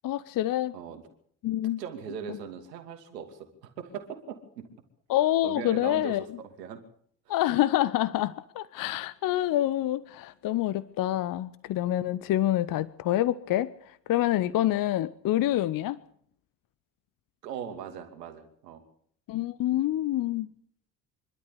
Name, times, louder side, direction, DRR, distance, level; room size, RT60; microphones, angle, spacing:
voice 1, 0.0-0.7 1.4-1.8 2.3-2.4 5.1-6.3 7.3-16.0 19.3-20.5, left 13 dB, 45° left, 18 dB, 0.8 m, -27 dB
voice 2, 1.8-4.6 5.4-6.2 6.4-6.8 7.3-7.4 15.4-15.7 17.4-18.8, right 7 dB, 75° right, 6 dB, 2.7 m, -40 dB
26.0 x 12.5 x 8.2 m, 0.64 s
figure-of-eight pair, 50°, 49 cm